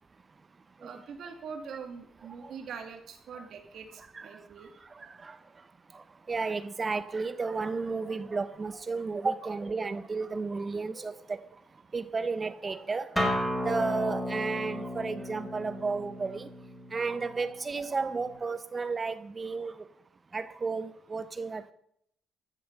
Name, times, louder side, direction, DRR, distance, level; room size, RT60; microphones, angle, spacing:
voice 1, 0.8-4.7, right 6 dB, 65° right, 2.4 m, -43 dB
voice 2, 4.1-4.5 4.8-5.4 5.9-11.4 11.9-13.2 13.6-16.5 16.9-19.9 20.3-21.7, right 4 dB, 30° right, 0.7 m, -33 dB
Acoustic guitar, 13.2-18.3, equal, 5° left, 3.9 m, -34 dB
14.0 x 7.5 x 6.7 m
cardioid pair, 90°, 0 cm